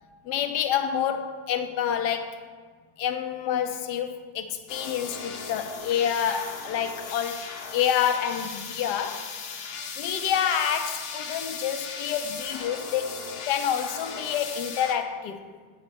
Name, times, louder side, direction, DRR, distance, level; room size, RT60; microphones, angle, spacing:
voice 1, 0.2-2.4 3.0-9.3 10.0-15.4, left 9 dB, 80° left, 1.2 m, -28 dB
sound 1, 4.7-15.0, left 5 dB, 60° left, 0.6 m, -37 dB
10.5 x 4.1 x 5.1 m
omnidirectional pair, 1.8 m